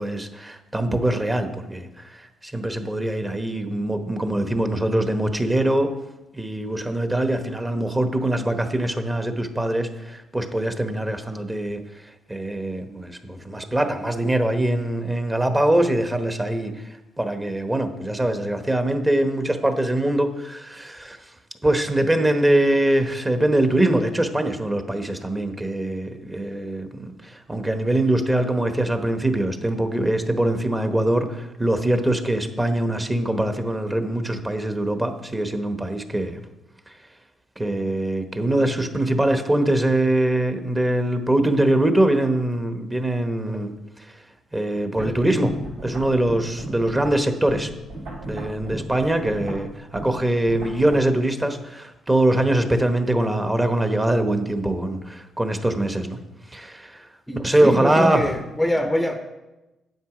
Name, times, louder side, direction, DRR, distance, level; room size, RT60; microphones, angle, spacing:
voice 1, 0.0-5.9 6.3-11.8 12.3-16.7 17.2-21.2 21.6-36.4 37.6-43.8 44.5-45.5 45.8-47.7 48.3-56.2 56.5-57.0 57.3-58.2, right 1 dB, 15° right, 7 dB, 1.0 m, -23 dB
voice 2, 45.0-45.5 57.3-59.2, left 1 dB, 5° left, 5 dB, 0.7 m, -25 dB
sound 1, 45.0-51.0, right 1 dB, 90° right, 3.8 m, -36 dB
9.3 x 7.7 x 5.0 m, 1.0 s
cardioid pair, 90°, 0 cm